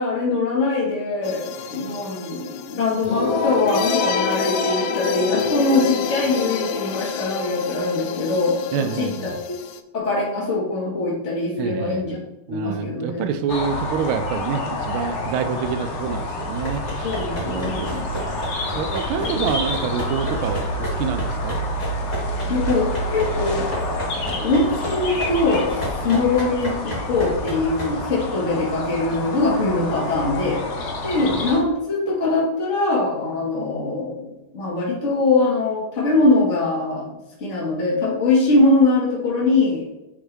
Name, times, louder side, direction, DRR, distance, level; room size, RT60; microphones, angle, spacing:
voice 1, 0.0-9.6 9.9-12.2 12.5-13.2 17.0-18.0 19.3-19.5 22.5-23.7 24.4-30.6 31.0-34.2 34.5-37.1 37.4-39.8, left 2 dB, 35° left, -5 dB, 1.9 m, -22 dB
sound 1, 1.2-9.8, left 5 dB, 90° left, 0.9 m, -27 dB
voice 2, 8.7-9.4 11.6-12.0 12.5-21.6 31.3-31.4, right 7 dB, 80° right, 9 dB, 1.5 m, -27 dB
sound 2, 13.5-31.6, left 1 dB, 50° left, 0.8 m, -28 dB
sound 3, 16.5-28.0, equal, 20° left, 2.4 m, -32 dB
8.6 x 3.7 x 3.3 m, 0.96 s
omnidirectional pair, 2.3 m